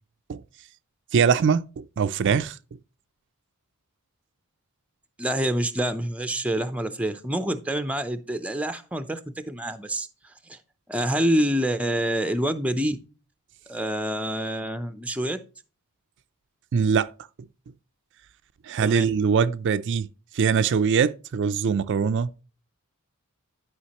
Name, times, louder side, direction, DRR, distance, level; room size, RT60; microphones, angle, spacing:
voice 1, 1.1-1.6 2.0-2.5 16.7-17.1 18.7-20.1 20.3-22.3, right 6 dB, 55° right, 0.4 m, -22 dB
voice 2, 5.2-9.2 9.5-10.1 10.5-10.6 10.9-13.0 13.7-15.4 18.8-19.1, right 1 dB, 5° right, 0.5 m, -26 dB
11.5 x 5.0 x 2.9 m
head